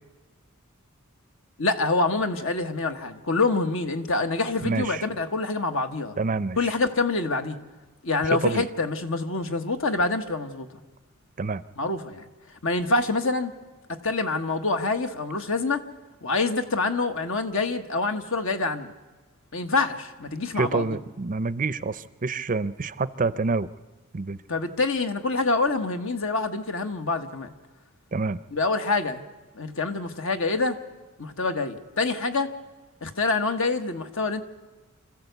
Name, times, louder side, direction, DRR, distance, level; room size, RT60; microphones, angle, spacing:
voice 1, 1.6-6.2 6.6-7.6 8.0-10.7 11.8-12.2 12.6-13.5 13.9-15.8 16.2-18.9 19.5-20.9 24.5-27.5 28.5-29.2 29.5-30.8 31.2-32.5 33.0-34.4, left 3 dB, 65° left, 7 dB, 1.4 m, -26 dB
voice 2, 4.6-5.0 6.2-6.7 8.3-8.7 11.4-11.6 20.5-23.7 24.1-24.4 28.1-28.4, right 3 dB, 40° right, 15 dB, 0.6 m, -27 dB
26.0 x 14.5 x 8.2 m, 1.3 s
head